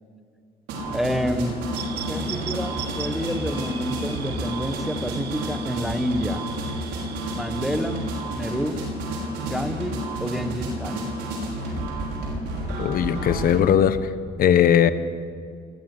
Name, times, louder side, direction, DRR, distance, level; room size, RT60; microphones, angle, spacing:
Fixed-wing aircraft airplane, 0.7-6.4, left 2 dB, 30° left, 5.0 m, -42 dB
sound 1, 0.7-13.6, right 1 dB, 90° right, 6.0 m, -30 dB
voice 1, 0.9-1.6 2.1-6.4 7.4-8.0 8.3-8.8 9.4-11.0, equal, ahead, 9 dB, 1.4 m, -28 dB
sound 2, 1.7-8.6, right 10 dB, 75° right, 1.4 m, -39 dB
voice 2, 12.8-14.0 14.4-14.9, left 9 dB, 60° left, 12 dB, 1.3 m, -18 dB
20.5 x 15.5 x 8.2 m, 2.2 s
cardioid pair, 110°, 17 cm